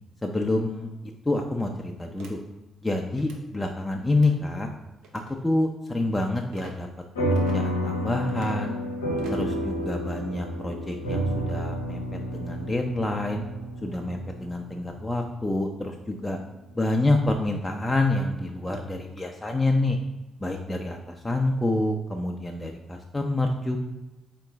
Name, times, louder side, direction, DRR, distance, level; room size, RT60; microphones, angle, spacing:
voice 1, 0.2-0.9 1.3-2.4 2.8-4.7 5.1-6.9 7.3-8.8 9.3-13.4 13.8-16.4 16.7-20.0 20.4-23.8, left 2 dB, 20° left, 2 dB, 0.6 m, -27 dB
sound 1, 2.2-2.3 3.1-3.4 4.1-4.4 5.0-5.3 6.5-6.7 7.3-7.6 8.2-8.6 9.2-9.5, right 5 dB, 70° right, 0.7 m, -45 dB
sound 2, 7.2-15.9, equal, 90° left, 0.7 m, -30 dB
4.5 x 3.0 x 3.5 m, 1.1 s
hypercardioid pair, 40°, 0 cm